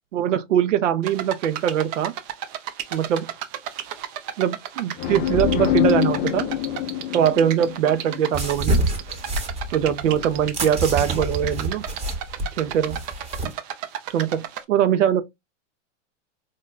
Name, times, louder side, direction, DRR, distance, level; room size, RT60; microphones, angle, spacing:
voice 1, 0.1-2.1 2.9-3.3 4.4-6.5 7.1-8.8 9.7-11.8 12.5-13.0 14.1-15.2, right 9 dB, 80° right, 0.7 m, -22 dB
sound 1, 1.0-14.6, right 10 dB, 35° right, 0.5 m, -34 dB
sound 2, 5.0-8.6, left 11 dB, 25° left, 0.4 m, -25 dB
sound 3, 8.3-13.5, right 2 dB, 15° right, 0.9 m, -27 dB
4.7 x 2.2 x 2.3 m
hypercardioid pair, 125°, 37 cm